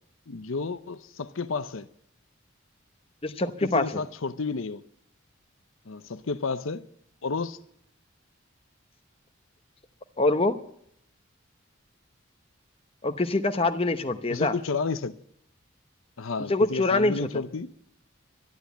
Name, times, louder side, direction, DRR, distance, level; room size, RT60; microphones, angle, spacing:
voice 1, 0.3-1.9 3.6-4.8 5.9-6.9 7.2-7.6 14.3-15.1 16.2-17.7, left 4 dB, 85° left, 0.8 m, -31 dB
voice 2, 3.2-4.0 10.2-10.6 13.0-14.5 16.5-17.3, left 2 dB, 30° left, 0.9 m, -24 dB
12.0 x 11.5 x 8.2 m
head